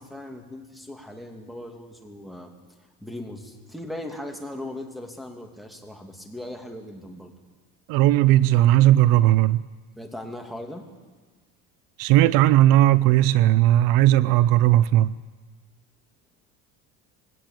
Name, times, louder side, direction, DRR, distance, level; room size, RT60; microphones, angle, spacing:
voice 1, 0.0-2.5 3.0-7.3 10.0-10.8, left 1 dB, ahead, 2.6 m, -38 dB
voice 2, 7.9-9.6 12.0-15.1, right 14 dB, 75° right, 0.6 m, -17 dB
20.5 x 16.5 x 9.0 m
cardioid pair, 125°, 34 cm